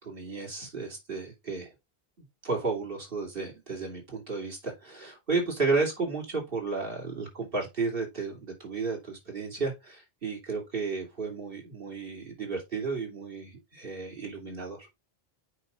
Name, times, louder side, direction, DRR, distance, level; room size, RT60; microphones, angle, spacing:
voice 1, 0.0-1.7 2.4-14.9, right 4 dB, 60° right, 3.3 m, -33 dB
6.5 x 5.6 x 4.0 m
omnidirectional pair, 1.0 m